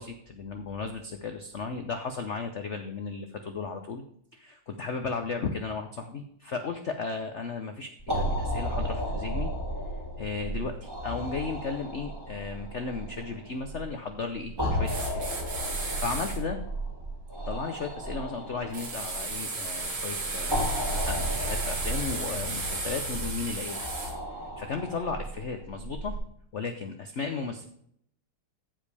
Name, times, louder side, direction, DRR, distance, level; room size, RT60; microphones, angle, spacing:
voice 1, 0.0-4.0 4.3-9.5 10.2-15.3 15.7-16.6 17.5-23.9 24.4-26.1 26.5-27.7, left 4 dB, 80° left, 6 dB, 0.6 m, -35 dB
sound 1, 8.0-26.2, equal, 10° right, 2.2 m, -34 dB
sound 2, 14.8-16.4 18.7-24.1, right 3 dB, 55° right, 2.6 m, -34 dB
15.0 x 5.1 x 3.4 m, 0.68 s
omnidirectional pair, 2.3 m